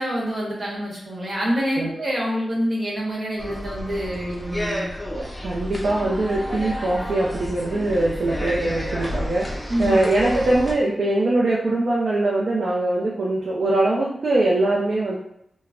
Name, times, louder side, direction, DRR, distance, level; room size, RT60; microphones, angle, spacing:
voice 1, 0.0-4.9 9.7-10.0, equal, 45° right, -5 dB, 1.1 m, -26 dB
sound 1, 3.4-10.7, equal, 10° left, 0.5 m, -31 dB
voice 2, 5.1-15.2, right 2 dB, 70° right, -5 dB, 0.4 m, -22 dB
2.4 x 2.0 x 3.3 m, 0.74 s
wide cardioid pair, 95°, 0 cm